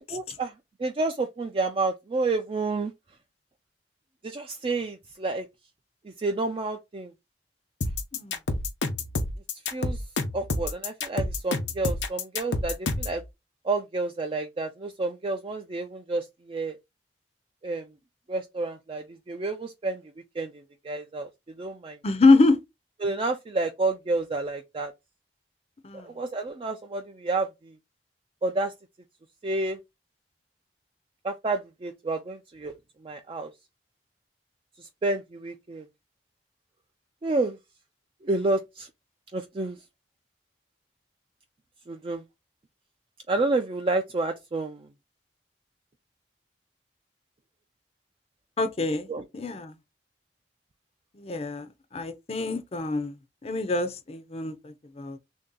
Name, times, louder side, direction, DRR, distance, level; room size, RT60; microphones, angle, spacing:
voice 1, 0.1-0.5 0.8-2.9 4.2-5.5 6.0-7.1 9.7-10.0 10.3-13.2 13.6-16.8 17.6-17.9 18.3-20.0 20.4-21.3 21.6-22.0 23.0-24.9 26.0-27.7 28.4-28.7 29.4-29.8 31.2-32.7 33.0-33.5 34.8-35.9 37.2-37.6 38.2-38.9 39.3-39.8 41.9-42.2 43.3-44.9 49.1-49.2, right 3 dB, 30° right, 0.4 m, -29 dB
sound 1, 7.8-13.2, left 3 dB, 90° left, 0.7 m, -29 dB
voice 2, 22.0-22.6 25.8-26.1 48.6-49.1 49.3-49.7 51.1-53.2 53.4-55.2, left 3 dB, 35° left, 0.5 m, -25 dB
3.3 x 2.7 x 3.7 m
head